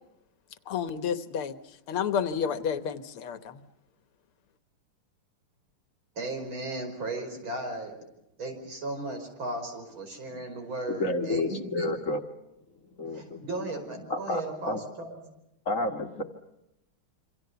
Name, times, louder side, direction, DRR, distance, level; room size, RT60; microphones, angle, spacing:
voice 1, 0.7-1.6 1.9-3.6, left 7 dB, 90° left, 12 dB, 2.1 m, -30 dB
voice 2, 6.2-7.9 8.4-12.0 13.1-15.2, right 2 dB, 70° right, 5 dB, 6.1 m, -36 dB
voice 3, 11.0-12.2 13.0-13.5 14.1-14.8 15.7-16.2, left 2 dB, 40° left, 5 dB, 1.8 m, -30 dB
27.5 x 26.0 x 6.9 m, 0.87 s
omnidirectional pair, 2.3 m